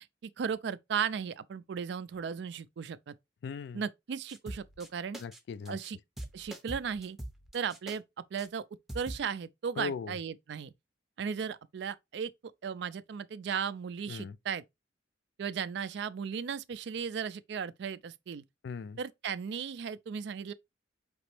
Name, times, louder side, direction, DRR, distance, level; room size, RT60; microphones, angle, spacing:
voice 1, 0.2-3.1 3.7-5.2 5.7-6.0 6.3-7.2 7.5-8.6 8.9-10.7 11.2-12.3 12.6-14.6 15.4-18.4 19.0-20.5, right 7 dB, 65° right, 0.4 m, -36 dB
voice 2, 3.4-3.8 5.2-5.8 9.8-10.2 14.1-14.4 18.6-19.0, left 5 dB, 65° left, 0.3 m, -38 dB
sound 1, 4.3-4.9 5.1-5.4 5.6-5.9 6.2-8.0 8.4-8.5 8.9-9.2, right 1 dB, ahead, 0.6 m, -43 dB
5.2 x 2.9 x 3.1 m
head